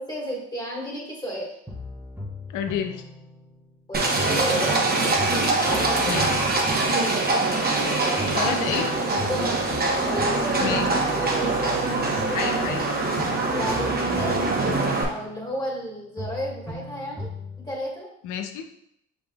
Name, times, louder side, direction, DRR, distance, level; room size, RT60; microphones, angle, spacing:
voice 1, 0.0-1.5 3.9-4.7 5.4-6.6 7.0-7.4 9.2-9.7 10.0-12.0 13.4-17.3 17.6-18.1, equal, 15° left, -3 dB, 1.7 m, -33 dB
sound 1, 1.7-3.8 4.2-7.9 8.2-11.8 12.2-15.9 16.2-17.8, left 2 dB, 5° right, 0.9 m, -38 dB
voice 2, 2.5-3.0 6.1-6.3 8.3-8.9 10.6-10.9 12.3-12.8 18.2-18.7, left 8 dB, 80° left, 7 dB, 0.5 m, -29 dB
Livestock farm animals working animals, 3.9-15.0, right 2 dB, 30° right, 1.0 m, -23 dB
5.8 x 3.5 x 2.3 m, 0.74 s
cardioid pair, 90°, 30 cm